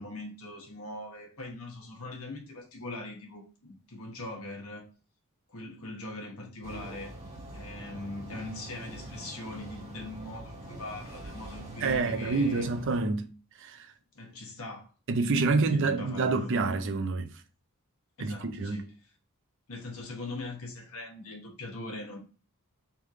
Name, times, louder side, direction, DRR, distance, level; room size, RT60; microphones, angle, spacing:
voice 1, 0.0-4.9 5.5-7.1 7.5-12.7 14.1-14.9 15.2-16.5 18.2-18.9 19.7-22.2, left 2 dB, 70° left, 1.3 m, -41 dB
sound 1, 6.6-13.0, right 1 dB, 30° right, 1.6 m, -44 dB
voice 2, 11.8-13.3 13.6-13.9 15.1-17.3 18.2-18.8, right 3 dB, 55° right, 0.5 m, -27 dB
3.5 x 3.2 x 3.6 m
head